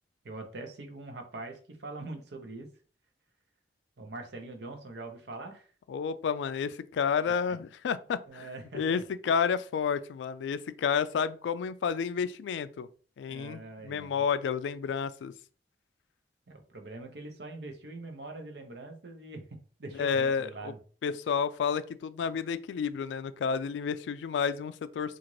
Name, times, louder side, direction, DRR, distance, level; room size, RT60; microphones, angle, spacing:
voice 1, 0.2-2.7 4.0-5.7 8.3-9.0 13.3-14.2 16.5-20.8, right 2 dB, 70° right, 0.7 m, -43 dB
voice 2, 5.9-8.5 8.7-12.9 13.2-15.3 20.0-20.7 21.0-25.2, left 6 dB, 90° left, 0.3 m, -30 dB
3.8 x 2.5 x 3.1 m
head